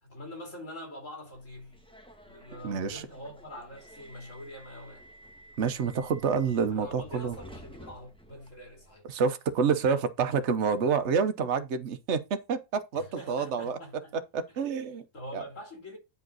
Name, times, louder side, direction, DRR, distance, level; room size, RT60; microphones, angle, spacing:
voice 1, 0.0-1.8 2.2-5.1 6.7-9.1 12.9-14.1 15.1-16.0, left 1 dB, 60° left, 3.6 m, -44 dB
Subway metro underground, 1.3-8.9, right 1 dB, 5° left, 1.3 m, -52 dB
voice 2, 2.6-3.0 5.6-7.4 9.1-13.8 14.3-15.0 15.3-15.4, right 6 dB, 55° right, 1.2 m, -28 dB
9.5 x 5.2 x 4.0 m
omnidirectional pair, 1.5 m